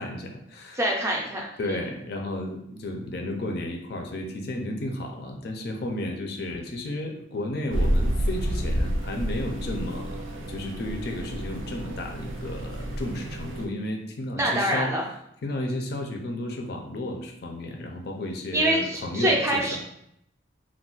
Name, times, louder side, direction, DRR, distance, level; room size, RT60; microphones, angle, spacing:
voice 1, 0.0-0.8 1.6-14.9 15.4-19.8, left 1 dB, 55° left, 3 dB, 0.4 m, -33 dB
voice 2, 0.8-1.8 14.4-15.0 18.5-19.8, right 1 dB, 15° right, -1 dB, 0.4 m, -25 dB
sound 1, 7.7-13.7, right 1 dB, 80° right, 0.4 m, -29 dB
2.3 x 2.1 x 3.8 m, 0.75 s
head